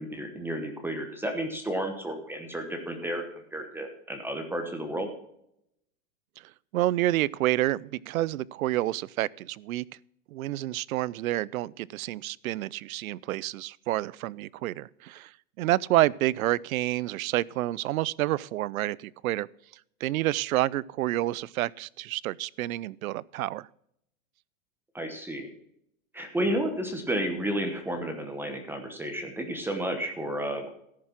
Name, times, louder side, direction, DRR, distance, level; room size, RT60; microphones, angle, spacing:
voice 1, 0.0-3.2 3.5-5.1 24.9-25.5 26.1-30.7, right 1 dB, 5° right, 1.0 m, -32 dB
voice 2, 6.7-9.8 10.3-15.3 15.6-19.5 20.0-23.7, right 15 dB, 85° right, 0.5 m, -28 dB
14.0 x 6.7 x 5.9 m
supercardioid pair, 150°, 41 cm